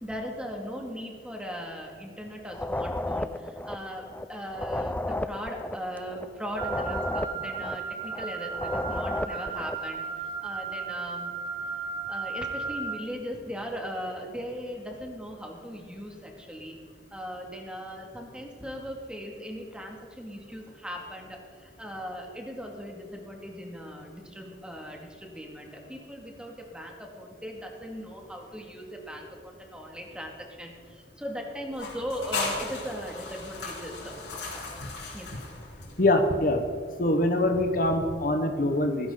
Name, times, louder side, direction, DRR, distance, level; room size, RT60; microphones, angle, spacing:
voice 1, 0.0-11.4 11.7-16.8 17.1-34.2 35.1-35.3, equal, 5° right, 0 dB, 2.2 m, -39 dB
sound 1, 2.5-9.9, left 1 dB, 10° left, 0.4 m, -33 dB
Wind instrument woodwind instrument, 6.6-13.0, right 5 dB, 30° right, 1.6 m, -35 dB
sound 2, 31.7-36.3, left 3 dB, 80° left, 5.1 m, -36 dB
voice 2, 36.0-36.6 37.0-39.1, left 1 dB, 50° left, 5 dB, 1.2 m, -24 dB
17.5 x 16.5 x 4.0 m, 2.1 s
head